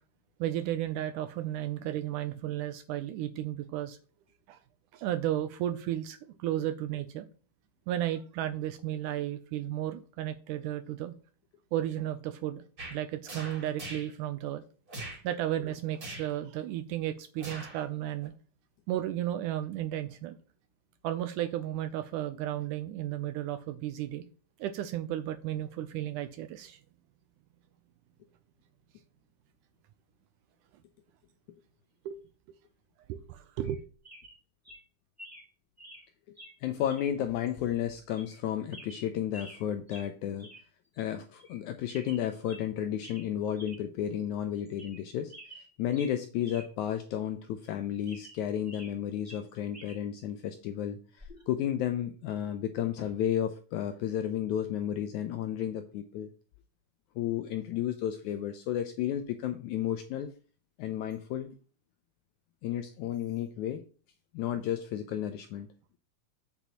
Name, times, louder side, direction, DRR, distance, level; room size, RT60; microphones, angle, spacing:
voice 1, 0.4-4.0 4.5-4.6 4.9-7.3 7.9-11.1 11.7-12.6 12.9-14.6 15.2-18.3 18.9-20.4 21.0-24.3 24.6-26.8 32.1-32.2 33.1-33.8, right 12 dB, 80° right, 1.9 m, -33 dB
sound 1, 12.8-13.0 13.2-14.1 14.9-15.2 16.0-16.3 17.4-17.8 18.2-18.3, right 2 dB, 25° right, 2.7 m, -42 dB
sound 2, 33.6-33.8 34.0-34.4 34.6-34.8 35.2-35.5 35.8-36.1 36.4-36.5 36.9-37.1 37.5-37.6 38.1-38.4 38.7-39.6 39.9-40.1 40.4-40.6 40.9-41.0 41.4-41.6 41.9-42.7 43.0-43.3 43.5-43.8 44.2-44.3 44.7-45.0 45.3-46.7 47.0-47.1 47.6-49.0 49.2-50.0 51.2-51.4, equal, 5° right, 2.2 m, -50 dB
voice 2, 36.6-40.5 41.0-45.3 45.8-56.3 57.2-60.3 60.8-61.6 62.6-63.8 64.3-65.7, left 10 dB, 80° left, 1.7 m, -32 dB
8.1 x 7.1 x 2.9 m
omnidirectional pair, 4.0 m